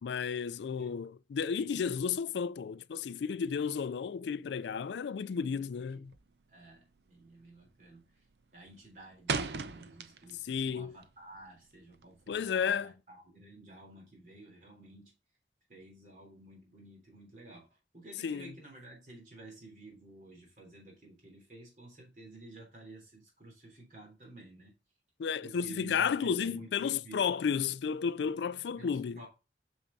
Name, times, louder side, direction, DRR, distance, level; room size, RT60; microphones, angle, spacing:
voice 1, 0.0-6.1 10.4-11.0 12.3-12.9 18.2-18.5 25.2-29.2, left 6 dB, 80° left, 0.4 m, -33 dB
sound 1, 6.0-6.4 6.7-7.1 7.4-7.9 8.2-10.5 10.8-12.3, right 4 dB, 70° right, 0.6 m, -37 dB
voice 2, 6.5-8.1 8.5-15.1 15.7-24.7 25.4-27.3 28.8-29.3, right 2 dB, 45° right, 3.4 m, -52 dB
6.9 x 6.3 x 2.7 m
head